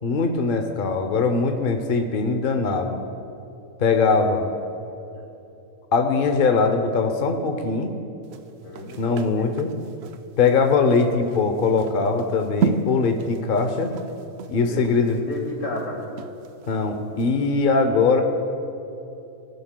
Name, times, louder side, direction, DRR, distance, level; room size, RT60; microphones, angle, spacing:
voice 1, 0.0-3.0 3.8-4.5 5.9-7.9 9.0-9.7 10.4-13.9 14.5-15.2 16.7-18.2, left 4 dB, 50° left, 6 dB, 0.7 m, -21 dB
sound 1, 8.2-16.8 17.2-17.3, right 6 dB, 70° right, 0.6 m, -32 dB
voice 2, 8.6-9.5 14.6-16.0, left 1 dB, 70° left, -3 dB, 2.8 m, -33 dB
22.0 x 11.0 x 2.2 m, 2.9 s
omnidirectional pair, 1.6 m